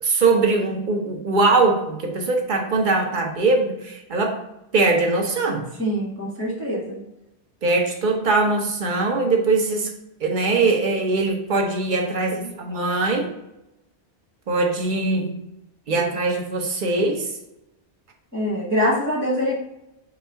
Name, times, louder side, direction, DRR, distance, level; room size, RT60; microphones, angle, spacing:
voice 1, 0.0-4.4 4.7-5.6 7.6-9.9 10.2-13.3 14.5-15.3 15.9-17.3, right 3 dB, 50° right, 3 dB, 0.8 m, -21 dB
voice 2, 5.8-7.0 18.3-19.5, equal, 10° left, -6 dB, 0.8 m, -24 dB
3.9 x 2.3 x 4.4 m, 0.90 s
omnidirectional pair, 1.2 m